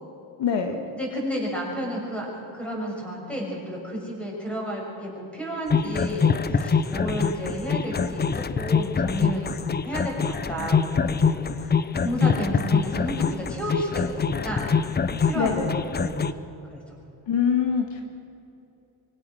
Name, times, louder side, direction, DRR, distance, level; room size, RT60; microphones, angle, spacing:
voice 1, 0.4-0.8 15.3-15.7 17.3-18.0, left 7 dB, 60° left, 4 dB, 2.1 m, -24 dB
voice 2, 0.9-14.7 15.2-15.5 16.0-16.3 16.7-17.0, equal, ahead, -2 dB, 6.9 m, -32 dB
sound 1, 5.7-16.3, left 5 dB, 20° left, 0.6 m, -24 dB
25.5 x 16.5 x 6.5 m, 2.9 s
cardioid pair, 130°, 49 cm